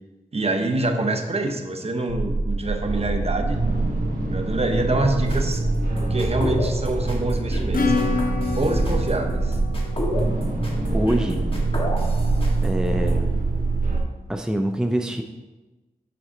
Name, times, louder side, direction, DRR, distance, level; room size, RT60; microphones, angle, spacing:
voice 1, 0.3-3.6 4.3-5.6 6.0-8.2 8.6-9.6, right 2 dB, 45° right, 4 dB, 0.9 m, -25 dB
sound 1, 2.1-14.0, right 3 dB, 70° right, 1.3 m, -25 dB
sound 2, 5.2-13.1, left 1 dB, 40° left, 1.6 m, -30 dB
Acoustic guitar / Strum, 7.7-12.0, left 4 dB, 70° left, 0.9 m, -29 dB
voice 2, 10.9-11.4 12.6-13.3 14.3-15.2, right 1 dB, 5° right, 5 dB, 0.5 m, -24 dB
7.7 x 5.5 x 3.8 m, 1.1 s
wide cardioid pair, 60°, 15 cm